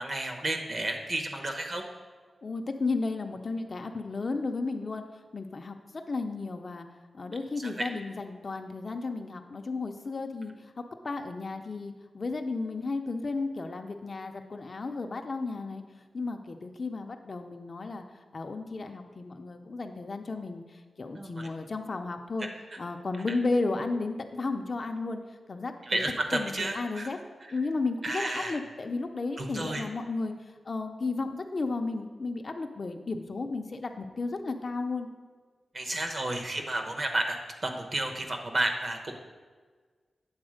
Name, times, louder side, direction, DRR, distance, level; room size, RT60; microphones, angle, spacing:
voice 1, 0.0-1.8 7.6-7.7 21.1-21.5 25.9-27.1 27.4-27.5 28.0-28.6 29.4-29.8 35.7-37.4 37.6-39.2, right 1 dB, 40° right, 4 dB, 0.9 m, -31 dB
voice 2, 2.4-5.0 5.3-5.8 6.1-6.9 7.1-15.8 16.1-18.0 18.3-20.6 21.0-22.5 22.8-25.2 25.5-26.0 26.3-27.2 27.5-30.3 30.7-35.1, left 3 dB, 40° left, 5 dB, 0.5 m, -33 dB
8.7 x 4.1 x 6.3 m, 1.5 s
wide cardioid pair, 165°, 0 cm